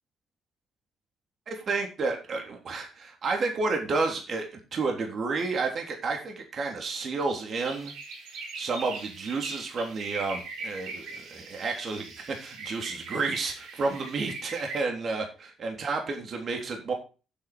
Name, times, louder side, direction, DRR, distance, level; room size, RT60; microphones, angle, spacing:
voice 1, 1.5-7.9 8.5-16.9, right 3 dB, 50° right, 2 dB, 3.3 m, -31 dB
sound 1, 7.5-14.8, right 3 dB, 90° right, 4.1 m, -41 dB
9.4 x 8.3 x 4.5 m, 0.33 s
cardioid pair, 90°, 0 cm